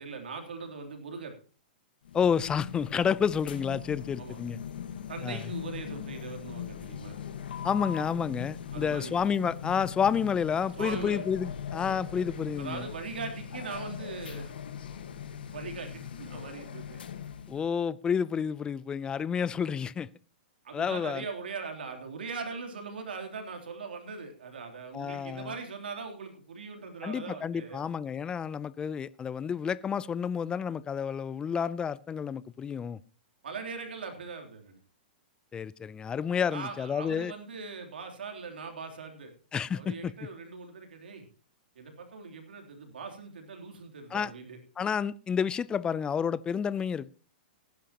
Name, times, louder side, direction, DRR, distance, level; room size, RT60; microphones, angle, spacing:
voice 1, 0.0-1.3 4.2-4.4 5.1-7.2 8.7-9.1 10.8-11.2 12.6-14.5 15.5-17.0 20.6-27.8 33.4-34.8 36.5-39.3 39.7-41.2 41.7-44.6, right 4 dB, 85° right, 3.3 m, -40 dB
sound 1, 2.0-17.7, left 8 dB, 80° left, 1.5 m, -40 dB
voice 2, 2.1-4.6 5.2-5.4 7.6-12.9 17.5-20.1 20.7-21.2 24.9-25.5 27.0-33.0 35.5-37.3 39.5-40.1 44.1-44.3 44.8-47.1, left 7 dB, 15° left, 0.5 m, -30 dB
18.5 x 10.5 x 3.0 m
hypercardioid pair, 130°, 5 cm